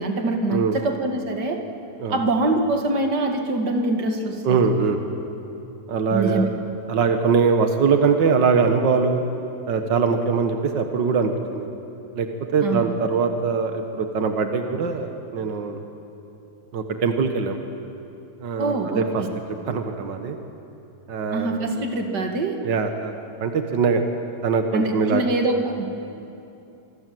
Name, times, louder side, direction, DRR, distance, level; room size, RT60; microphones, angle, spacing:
voice 1, 0.0-1.6 2.1-4.6 6.1-6.5 12.6-12.9 18.6-19.3 21.3-22.5 24.7-25.9, right 2 dB, 35° right, 3 dB, 2.1 m, -24 dB
voice 2, 4.4-5.0 5.9-6.5 6.9-9.2 9.7-11.7 12.1-15.8 16.7-17.6 18.4-19.0 19.6-20.4 21.1-21.7 22.6-23.1 23.4-24.0 24.4-25.2, right 5 dB, 80° right, 6 dB, 1.0 m, -22 dB
25.5 x 25.0 x 7.8 m, 2.8 s
omnidirectional pair, 4.2 m